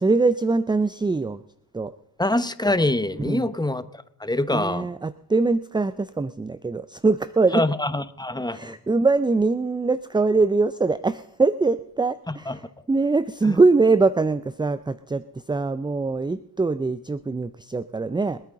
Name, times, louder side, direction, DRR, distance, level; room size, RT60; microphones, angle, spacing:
voice 1, 0.0-1.4 1.7-1.9 3.2-3.5 4.5-7.6 8.5-18.4, right 3 dB, 10° right, 15 dB, 0.4 m, -23 dB
voice 2, 2.2-3.8 4.2-4.9 7.5-8.7 12.5-12.6 13.4-13.6, left 2 dB, 10° left, 13 dB, 0.9 m, -24 dB
27.5 x 9.2 x 3.8 m, 0.76 s
supercardioid pair, 55°, 45 cm